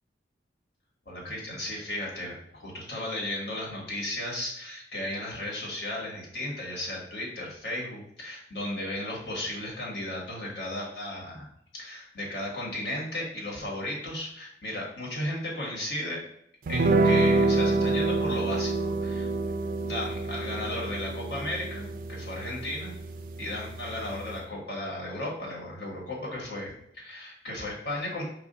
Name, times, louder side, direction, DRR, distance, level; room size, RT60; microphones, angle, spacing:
voice 1, 1.1-11.5 11.7-16.2 16.7-19.3 19.8-23.0 23.4-28.2, left 1 dB, 60° left, -3 dB, 1.4 m, -35 dB
sound 1, 16.7-24.4, right 3 dB, 45° right, 0.3 m, -27 dB
4.9 x 2.4 x 3.8 m, 0.71 s
head